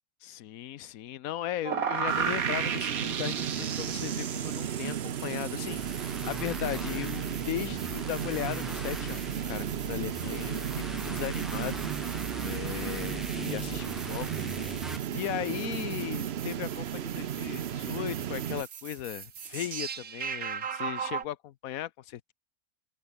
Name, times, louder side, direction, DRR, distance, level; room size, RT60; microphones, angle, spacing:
voice 1, 0.2-11.8 12.4-14.5 15.1-22.3, left 12 dB, 75° left, 1.1 m, -37 dB
sound 1, 1.6-21.2, right 7 dB, 70° right, 1.9 m, -38 dB
sound 2, 2.1-18.6, right 10 dB, 55° right, 0.8 m, -34 dB
sound 3, 5.6-15.0, equal, ahead, 1.5 m, -41 dB
open air
omnidirectional pair, 1.5 m